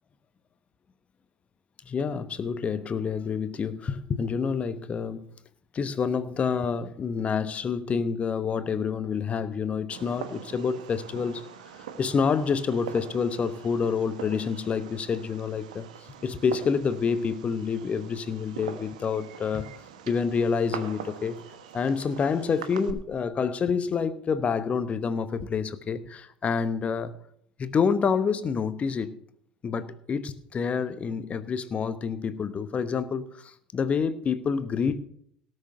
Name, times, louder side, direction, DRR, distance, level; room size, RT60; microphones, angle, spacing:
voice 1, 1.8-5.2 5.7-11.4 11.7-15.9 16.2-19.7 20.1-21.4 21.7-27.1 27.6-29.2 29.6-35.0, left 6 dB, 30° left, 1.0 m, -28 dB
Fireworks, 9.9-22.9, right 8 dB, 70° right, 1.1 m, -43 dB
18.0 x 6.6 x 6.5 m
figure-of-eight pair, 65°, 4 cm